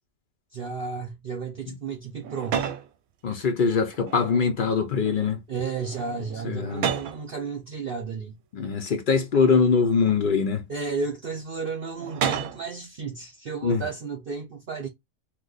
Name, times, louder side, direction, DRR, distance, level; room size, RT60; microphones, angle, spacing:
voice 1, 0.5-2.7 5.5-8.4 10.7-14.9, right 5 dB, 55° right, 0.7 m, -33 dB
sound 1, 2.2-2.9 3.9-4.7 5.0-5.3 5.7-7.2 8.1-8.2 9.3-10.2 11.9-12.7, right 8 dB, 85° right, 1.0 m, -32 dB
voice 2, 3.2-5.4 6.4-6.9 8.5-10.7 13.6-13.8, left 5 dB, 65° left, 0.5 m, -23 dB
3.0 x 2.1 x 3.8 m
omnidirectional pair, 1.4 m